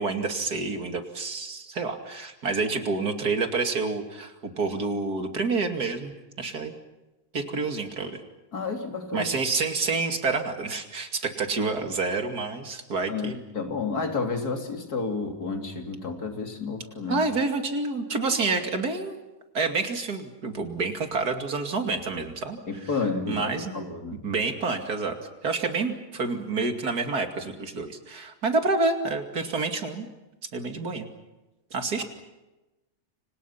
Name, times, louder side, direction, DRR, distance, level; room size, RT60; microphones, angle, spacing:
voice 1, 0.0-6.1 6.4-6.8 7.3-8.2 9.1-13.4 17.1-19.2 19.5-22.9 23.3-25.2 25.4-30.1 30.5-31.1 31.7-32.0, right 3 dB, 85° right, 5 dB, 3.0 m, -28 dB
voice 2, 8.5-9.3 13.1-17.2 22.7-24.2, left 4 dB, 85° left, 4 dB, 3.6 m, -31 dB
29.5 x 26.5 x 5.8 m, 1.0 s
omnidirectional pair, 1.6 m